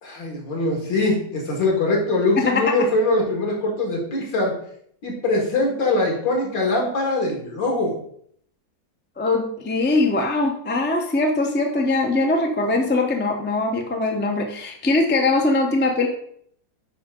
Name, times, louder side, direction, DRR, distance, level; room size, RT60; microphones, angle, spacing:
voice 1, 0.0-4.5 5.0-7.9, left 2 dB, 70° left, -1 dB, 2.7 m, -22 dB
voice 2, 2.4-2.7 9.2-16.1, left 2 dB, 10° left, 2 dB, 0.5 m, -21 dB
8.5 x 5.4 x 3.8 m, 0.63 s
omnidirectional pair, 2.1 m